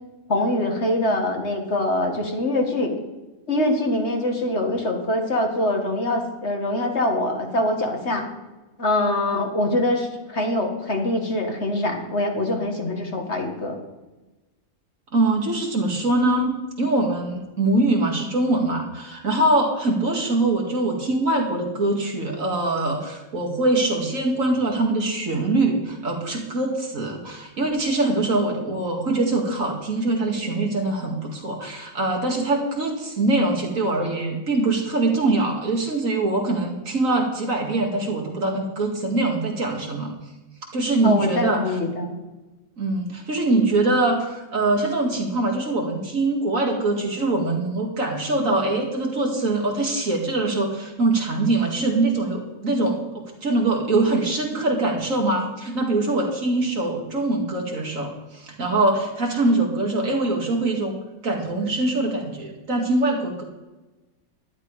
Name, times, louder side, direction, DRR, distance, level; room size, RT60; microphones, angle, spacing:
voice 1, 0.3-2.9 3.5-8.2 8.8-13.8 41.0-42.2, left 1 dB, 50° left, 2 dB, 1.9 m, -24 dB
voice 2, 15.1-40.1 40.7-41.6 42.8-61.0 61.2-63.4, right 2 dB, 60° right, 1 dB, 2.4 m, -23 dB
12.0 x 11.0 x 4.8 m, 1.1 s
omnidirectional pair, 1.5 m